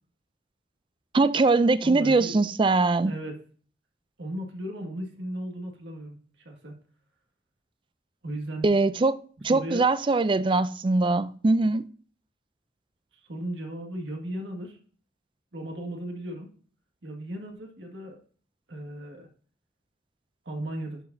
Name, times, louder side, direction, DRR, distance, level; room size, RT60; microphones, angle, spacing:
voice 1, 1.1-3.1 8.6-9.2 9.4-11.9, right 3 dB, 30° right, 0.4 m, -22 dB
voice 2, 1.8-2.3 3.1-3.4 4.2-6.8 8.2-8.7 9.5-9.9 13.3-14.8 15.5-16.5 17.0-18.2 18.7-19.3 20.5-21.0, right 1 dB, 85° right, 1.8 m, -36 dB
11.0 x 4.8 x 2.7 m
head